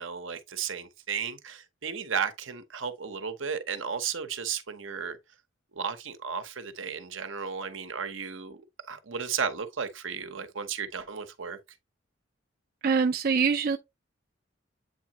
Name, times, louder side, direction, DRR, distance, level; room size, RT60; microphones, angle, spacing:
voice 1, 0.0-5.2 5.7-11.6, right 6 dB, 75° right, 1.0 m, -34 dB
voice 2, 12.8-13.8, right 5 dB, 50° right, 0.5 m, -24 dB
8.2 x 3.8 x 3.0 m
head